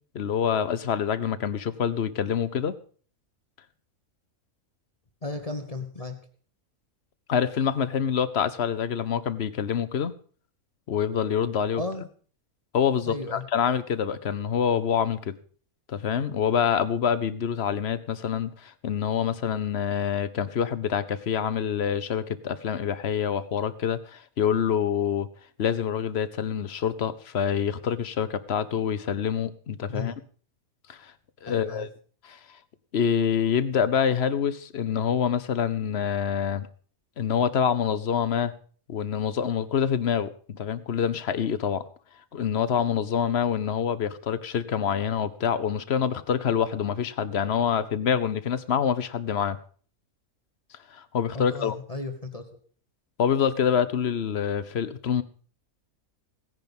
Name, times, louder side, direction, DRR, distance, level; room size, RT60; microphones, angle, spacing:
voice 1, 0.1-2.7 7.3-10.1 10.9-11.8 12.7-15.3 15.9-25.3 25.6-30.1 30.9-31.1 31.4-31.9 32.2-32.4 32.9-36.7 37.2-38.5 38.9-41.8 42.3-49.6 50.9-51.8 53.2-55.2, left 8 dB, 50° left, 15 dB, 1.1 m, -26 dB
voice 2, 5.2-6.2 11.8-12.0 13.0-13.4 29.9-30.2 31.5-31.9 51.3-52.4, left 2 dB, 25° left, 5 dB, 1.4 m, -34 dB
16.5 x 10.5 x 5.4 m, 0.44 s
omnidirectional pair, 1.5 m